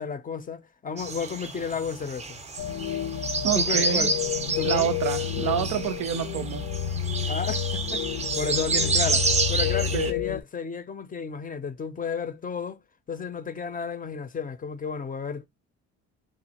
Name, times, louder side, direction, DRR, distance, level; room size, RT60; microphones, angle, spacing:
voice 1, 0.0-2.4 3.5-4.1 4.6-4.9 7.3-12.8 13.1-15.5, left 6 dB, 30° left, 0.5 m, -32 dB
sound 1, 1.0-10.1, right 4 dB, 20° right, 0.5 m, -29 dB
sound 2, 2.6-10.4, left 9 dB, 80° left, 0.5 m, -30 dB
voice 2, 3.4-4.1 4.6-6.7 9.9-10.1, right 9 dB, 85° right, 0.5 m, -28 dB
3.1 x 2.4 x 2.8 m
cardioid pair, 90°, 30 cm